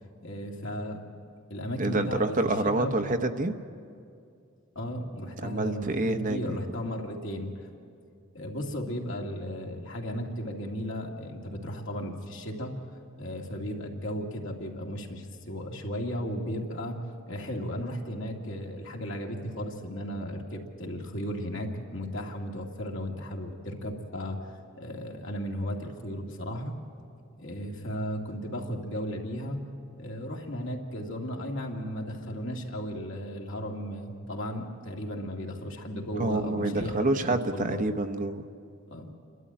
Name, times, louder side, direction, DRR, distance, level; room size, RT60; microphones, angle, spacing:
voice 1, 0.2-1.0 1.5-2.2 2.8-3.2 4.8-7.5 8.3-12.8 13.2-26.7 27.4-29.6 30.0-37.8 38.9-39.1, equal, 65° left, 0 dB, 2.4 m, -35 dB
voice 2, 1.8-3.5 5.4-6.6 36.2-38.4, right 2 dB, 40° right, 8 dB, 0.8 m, -27 dB
28.5 x 12.5 x 8.8 m, 2.4 s
head